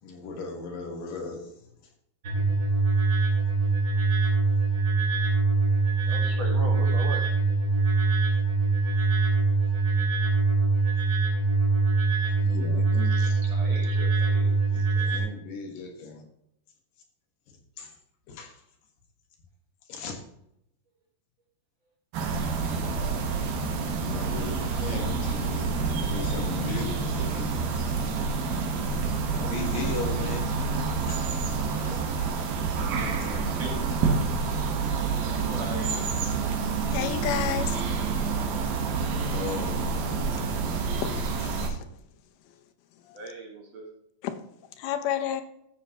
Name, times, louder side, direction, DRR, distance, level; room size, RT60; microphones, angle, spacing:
voice 1, 0.0-1.6 12.4-13.5 14.7-16.3 17.5-17.9 18.3-18.6 19.9-20.2 24.0-27.8 29.3-30.7 31.0-32.3 39.0-40.4, left 4 dB, 70° left, 3.0 m, -38 dB
sound 1, 2.2-15.2, right 3 dB, 35° right, 1.6 m, -23 dB
voice 2, 6.1-7.2 13.5-14.5 32.3-32.5 32.9-34.4 35.2-36.0 43.1-43.9, right 2 dB, 55° right, 2.3 m, -39 dB
sound 2, 22.1-41.7, right 4 dB, 75° right, 3.0 m, -28 dB
voice 3, 36.9-37.8 41.0-41.1 41.4-41.8 43.1-43.2 44.2-44.4 44.8-45.4, left 10 dB, 90° left, 2.8 m, -30 dB
14.0 x 7.2 x 2.9 m
omnidirectional pair, 4.3 m